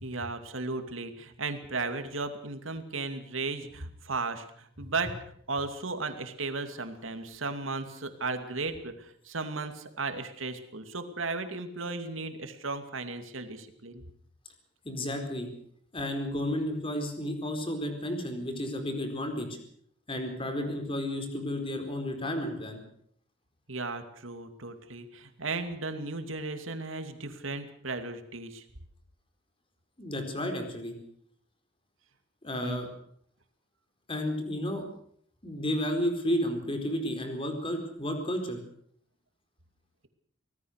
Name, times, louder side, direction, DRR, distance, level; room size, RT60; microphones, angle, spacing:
voice 1, 0.0-5.2 5.5-14.0 23.7-28.6 32.6-32.8, right 3 dB, 85° right, 7 dB, 2.6 m, -35 dB
voice 2, 14.8-15.5 15.9-19.6 20.1-22.8 30.0-30.9 32.4-32.9 34.1-34.8 35.4-38.6, left 1 dB, 25° left, 5 dB, 4.4 m, -32 dB
25.0 x 18.0 x 6.6 m, 0.65 s
head